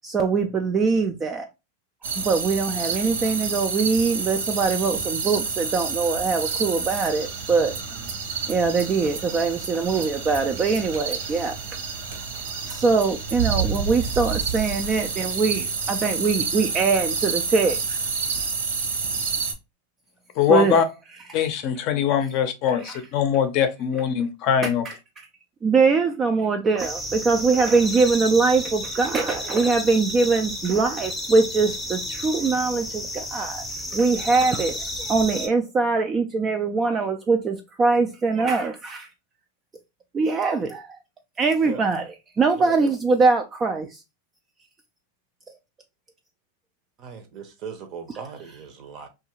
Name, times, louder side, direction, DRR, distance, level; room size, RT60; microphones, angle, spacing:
voice 1, 0.0-1.5 2.2-7.7 8.5-11.6 12.7-18.1 20.5-20.8 21.3-21.5 22.8-23.0 24.6-24.9 25.6-33.6 33.9-39.1 40.1-41.0 41.4-44.0, right 4 dB, 20° right, 0.3 m, -22 dB
sound 1, 2.0-19.5, right 5 dB, 90° right, 0.7 m, -29 dB
sound 2, 7.5-7.9 8.6-8.7 8.9-9.0 9.9-10.3 10.6-11.7 12.0-12.6 13.2-15.2, right 7 dB, 70° right, 1.2 m, -29 dB
voice 2, 20.4-20.8 21.3-24.8, left 8 dB, 45° left, 0.5 m, -22 dB
sound 3, 26.8-35.5, left 1 dB, ahead, 0.7 m, -32 dB
voice 3, 42.6-42.9 47.0-49.1, right 6 dB, 40° right, 0.7 m, -38 dB
2.6 x 2.4 x 2.9 m
supercardioid pair, 140°, 0 cm